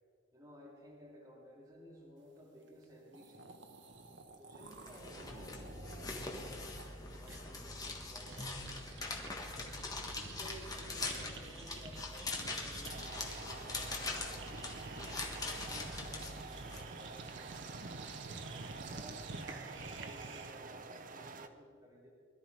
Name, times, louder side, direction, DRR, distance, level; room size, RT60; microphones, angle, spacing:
voice 1, 0.3-3.6 4.4-6.7 7.1-9.2 10.2-14.3 14.9-18.1 18.9-22.1, equal, 15° right, -5 dB, 2.8 m, -56 dB
sound 1, 2.8-2.9 3.1-9.3 9.6-20.7, right 3 dB, 60° right, 1.1 m, -51 dB
sound 2, 4.7-16.8, left 2 dB, 20° left, 1.5 m, -42 dB
sound 3, 12.8-21.5, right 4 dB, 40° right, 0.7 m, -48 dB
21.0 x 12.5 x 4.8 m, 2.2 s
head